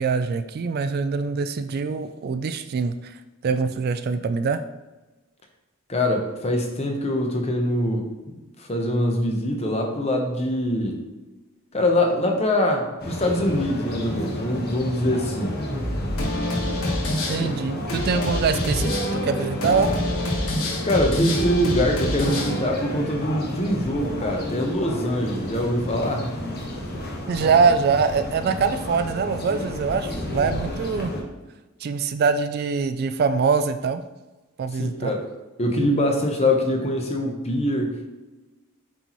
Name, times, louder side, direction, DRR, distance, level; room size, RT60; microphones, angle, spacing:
voice 1, 0.0-3.2 3.4-4.6 17.3-19.9 27.3-31.1 31.8-34.0 34.6-35.1, right 5 dB, 45° right, 10 dB, 0.3 m, -23 dB
voice 2, 5.9-8.1 8.6-11.0 11.7-15.5 17.4-17.5 20.8-26.3 34.7-35.2 35.6-38.1, left 1 dB, 30° left, 2 dB, 0.9 m, -23 dB
sound 1, 13.0-31.2, left 1 dB, 50° left, 1.2 m, -32 dB
sound 2, 15.4-22.6, left 1 dB, 80° left, 1.4 m, -27 dB
8.0 x 4.2 x 3.0 m, 1.1 s
head